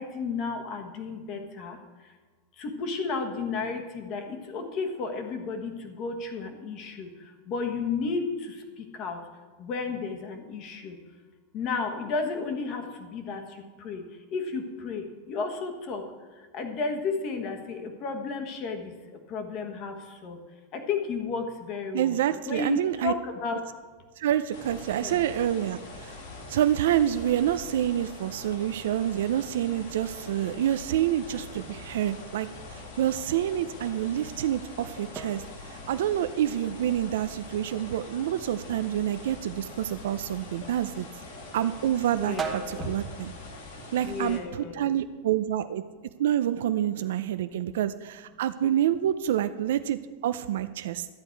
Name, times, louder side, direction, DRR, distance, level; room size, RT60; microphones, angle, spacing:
voice 1, 0.0-1.8 2.6-7.1 7.5-9.2 9.6-11.0 11.5-14.0 14.3-16.0 16.5-18.9 19.3-19.9 20.2-20.4 20.7-22.2 22.5-23.6 25.0-25.2 42.2-42.9 44.0-44.8, left 4 dB, 30° left, 5 dB, 1.3 m, -32 dB
voice 2, 21.9-23.1 24.2-26.2 26.5-41.1 41.5-43.3 43.9-45.8 46.2-51.1, right 11 dB, 70° right, 10 dB, 0.5 m, -27 dB
sound 1, 24.5-44.4, left 2 dB, 60° left, 2.3 m, -44 dB
sound 2, 33.8-44.5, right 4 dB, 10° right, 1.0 m, -44 dB
12.0 x 9.8 x 4.6 m, 1.4 s
supercardioid pair, 175°, 0 cm